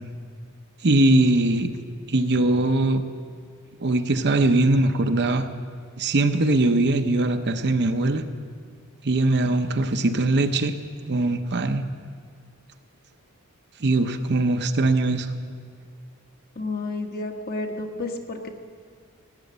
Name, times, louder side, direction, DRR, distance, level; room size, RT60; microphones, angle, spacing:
voice 1, 0.8-1.7 2.1-3.0 3.8-5.5 6.0-8.2 9.0-10.7 11.1-11.8 13.8-15.3, right 2 dB, 50° right, 8 dB, 0.8 m, -21 dB
voice 2, 16.5-18.5, left 2 dB, 45° left, 4 dB, 1.4 m, -31 dB
17.0 x 9.9 x 8.0 m, 2.1 s
head